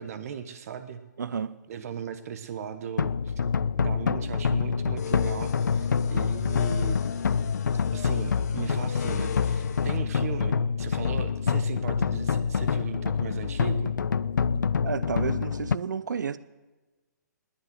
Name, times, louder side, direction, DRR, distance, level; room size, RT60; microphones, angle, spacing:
voice 1, 0.0-1.0 1.7-3.3 3.8-7.0 7.9-13.9, right 7 dB, 50° right, 10 dB, 1.2 m, -37 dB
voice 2, 1.2-1.6 14.8-16.4, right 6 dB, 70° right, 17 dB, 0.7 m, -31 dB
sound 1, 3.0-15.8, left 6 dB, 80° left, 0.5 m, -26 dB
sound 2, 5.0-10.0, left 8 dB, 60° left, 1.9 m, -40 dB
20.5 x 8.4 x 8.1 m, 1.2 s
hypercardioid pair, 135°, 10 cm